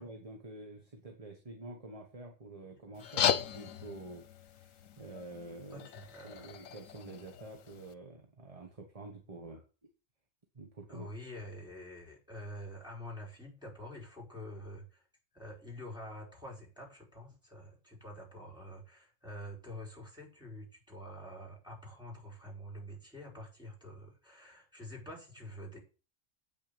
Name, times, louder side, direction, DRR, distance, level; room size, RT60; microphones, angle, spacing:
voice 1, 0.0-5.9 6.2-9.6 10.5-11.1, right 2 dB, 30° right, 3 dB, 1.4 m, -48 dB
sound 1, 2.9-7.9, left 9 dB, 85° left, 1.2 m, -36 dB
voice 2, 5.7-6.8 10.9-15.1 15.3-25.8, equal, 5° right, -3 dB, 4.8 m, -47 dB
8.8 x 6.2 x 6.8 m, 0.34 s
omnidirectional pair, 1.3 m